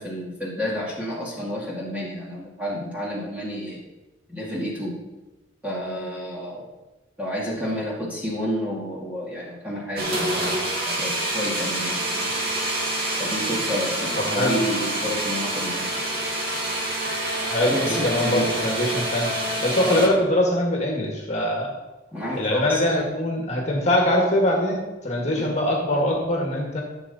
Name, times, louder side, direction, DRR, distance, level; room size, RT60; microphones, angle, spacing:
voice 1, 0.0-3.8 4.3-5.0 5.6-6.7 7.2-12.3 13.2-16.0 17.6-18.5 19.9-20.2 22.1-22.8 25.2-25.5, equal, 10° right, -6 dB, 2.2 m, -30 dB
sound 1, 10.0-20.1, right 1 dB, 55° right, 2.6 m, -27 dB
voice 2, 14.2-14.6 17.4-21.7 22.4-26.8, left 1 dB, 35° left, -1 dB, 1.9 m, -23 dB
15.0 x 7.4 x 4.2 m, 1.1 s
head